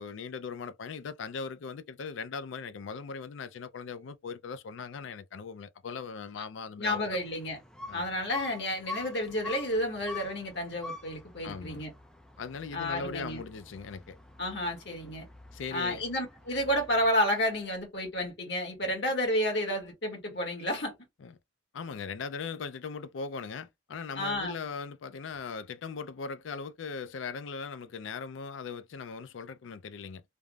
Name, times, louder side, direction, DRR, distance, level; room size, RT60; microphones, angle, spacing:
voice 1, 0.0-7.2 7.9-8.1 11.4-11.8 12.4-14.2 15.5-16.0 21.2-21.4 21.7-30.2, left 5 dB, 80° left, 0.4 m, -39 dB
voice 2, 6.8-7.6 7.9-11.9 12.7-13.4 14.4-15.3 15.7-20.9 24.2-24.5, left 1 dB, 60° left, 1.4 m, -31 dB
sound 1, 6.9-17.1, left 2 dB, 5° left, 0.3 m, -46 dB
3.4 x 2.0 x 2.3 m
head